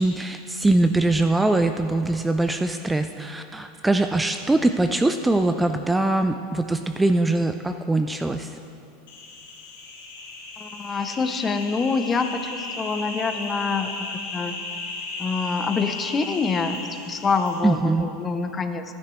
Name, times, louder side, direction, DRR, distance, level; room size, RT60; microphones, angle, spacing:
voice 1, 0.0-8.6 17.6-18.1, right 2 dB, 10° right, 7 dB, 0.3 m, -22 dB
sound 1, 9.1-17.6, left 3 dB, 85° left, 1.7 m, -35 dB
voice 2, 10.6-14.6 15.2-16.8 17.1-19.0, left 4 dB, 25° left, 8 dB, 0.6 m, -26 dB
11.5 x 9.7 x 3.1 m, 2.7 s
hypercardioid pair, 105°, 0 cm